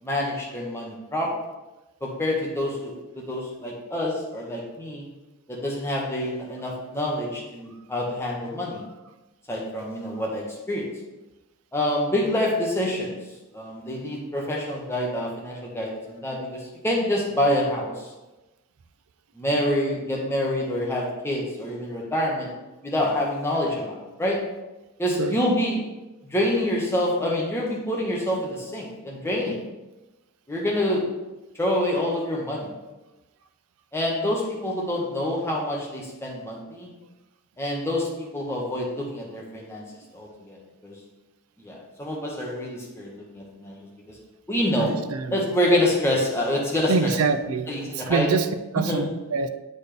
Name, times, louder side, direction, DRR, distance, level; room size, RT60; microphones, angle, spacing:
voice 1, 0.0-1.4 2.0-5.1 5.5-8.8 9.5-10.9 11.7-13.2 13.5-18.1 19.3-22.5 22.8-24.4 25.0-25.8 26.2-29.7 30.5-31.1 31.6-32.7 33.9-36.9 37.6-39.8 40.1-40.6 40.8-40.9 41.6-43.8 44.1-44.2 44.5-44.9 45.3-47.1 47.7-48.3 48.9-49.0, left 1 dB, 10° left, -3 dB, 1.1 m, -26 dB
voice 2, 44.8-45.5 46.9-47.7 48.0-48.5 48.7-49.5, right 4 dB, 70° right, 10 dB, 0.5 m, -25 dB
8.2 x 4.0 x 3.4 m, 1.1 s
head